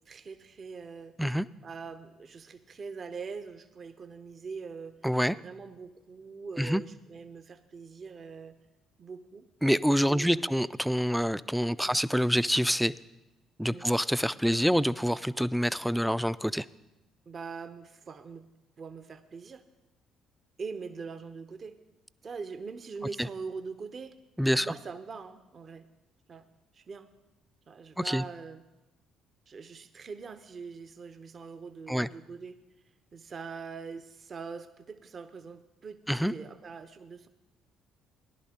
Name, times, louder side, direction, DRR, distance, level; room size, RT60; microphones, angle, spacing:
voice 1, 0.1-1.2 1.6-5.0 5.3-8.6 9.0-9.4 9.8-10.5 11.8-12.0 13.7-13.9 17.3-18.5 18.8-19.6 20.6-21.8 22.2-24.2 24.6-25.9 26.3-26.5 26.7-27.1 27.7-28.6 29.5-32.6 33.1-37.3, right 5 dB, 45° right, 10 dB, 0.6 m, -42 dB
voice 2, 5.0-5.4 6.6-6.8 9.6-12.9 13.6-16.7 24.4-24.7 28.0-28.2 31.9-32.1 36.1-36.3, equal, ahead, 17 dB, 0.3 m, -26 dB
17.0 x 11.0 x 2.8 m, 1.0 s
hypercardioid pair, 50°, 0 cm